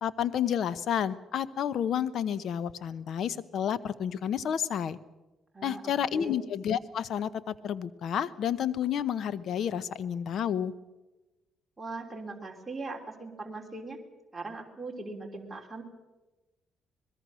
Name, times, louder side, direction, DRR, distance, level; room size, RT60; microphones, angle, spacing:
voice 1, 0.0-5.0 5.6-10.7, left 9 dB, 70° left, 17 dB, 0.9 m, -30 dB
voice 2, 5.5-6.4 11.8-14.0 14.3-15.8, right 3 dB, 15° right, 0 dB, 3.2 m, -40 dB
23.5 x 21.0 x 6.3 m, 1.1 s
cardioid pair, 90°, 0 cm